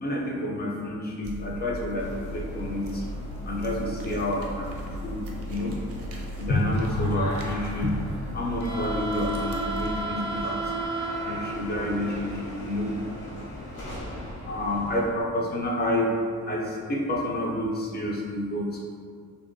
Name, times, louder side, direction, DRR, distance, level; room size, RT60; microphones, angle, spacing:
voice 1, 0.0-3.0 3.5-5.7 6.4-7.9 8.3-10.6 11.3-13.0 14.5-16.1 16.4-18.8, left 1 dB, 35° left, -2 dB, 0.5 m, -29 dB
sound 1, 1.2-10.0, equal, 50° right, 0.5 m, -37 dB
sound 2, 2.0-15.1, right 1 dB, 70° left, 1.0 m, -36 dB
2.5 x 2.1 x 2.6 m, 2.1 s
cardioid pair, 90°, 30 cm